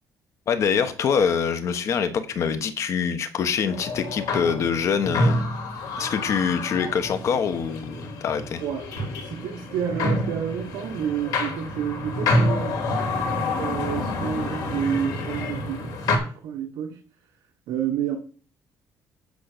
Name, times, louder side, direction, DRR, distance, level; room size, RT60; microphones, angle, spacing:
voice 1, 0.5-5.5 6.0-8.6, left 6 dB, 45° left, 1.2 m, -25 dB
sound 1, 3.7-16.2, left 2 dB, 65° left, 2.7 m, -28 dB
voice 2, 8.6-17.0 17.7-18.2, right 8 dB, 85° right, 1.3 m, -30 dB
8.5 x 5.5 x 6.7 m
cardioid pair, 170°, 7 cm